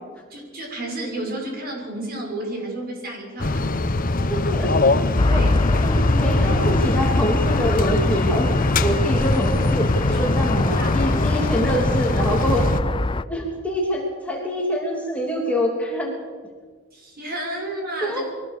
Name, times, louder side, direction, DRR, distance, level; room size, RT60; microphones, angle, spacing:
voice 1, 0.3-3.6 5.3-5.5 10.0-11.4 16.9-18.2, right 1 dB, 45° right, 0 dB, 7.0 m, -32 dB
sound 1, 3.4-12.8, left 2 dB, 40° left, 1.0 m, -22 dB
voice 2, 4.3-5.4 5.7-12.7 13.3-16.2 18.0-18.2, equal, 5° left, -1 dB, 3.0 m, -25 dB
sound 2, 5.2-13.2, left 2 dB, 25° left, 0.5 m, -24 dB
23.5 x 18.5 x 6.9 m, 1.5 s
head